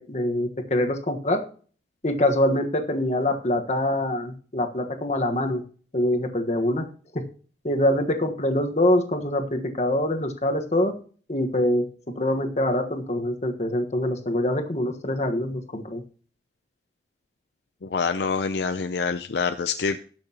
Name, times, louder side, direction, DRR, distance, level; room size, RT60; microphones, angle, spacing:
voice 1, 0.0-1.4 2.0-5.6 5.9-6.8 7.1-7.2 7.6-10.9 11.3-11.8 12.2-16.0, left 1 dB, 40° left, 5 dB, 1.3 m, -24 dB
voice 2, 17.8-20.0, left 5 dB, 70° left, 9 dB, 0.5 m, -26 dB
18.5 x 6.4 x 2.9 m, 0.42 s
head